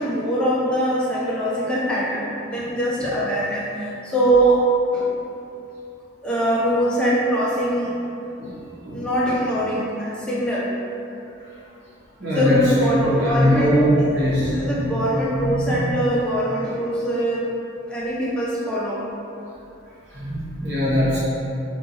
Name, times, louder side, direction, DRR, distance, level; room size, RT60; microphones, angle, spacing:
voice 1, 0.0-4.6 4.9-5.1 6.2-8.0 8.9-10.7 12.3-14.1 14.4-17.4 17.9-19.0, right 1 dB, 5° left, -7 dB, 0.4 m, -22 dB
voice 2, 12.2-14.9 15.3-15.9 20.1-21.2, equal, 55° right, -11 dB, 1.0 m, -21 dB
2.7 x 2.5 x 2.7 m, 2.7 s
head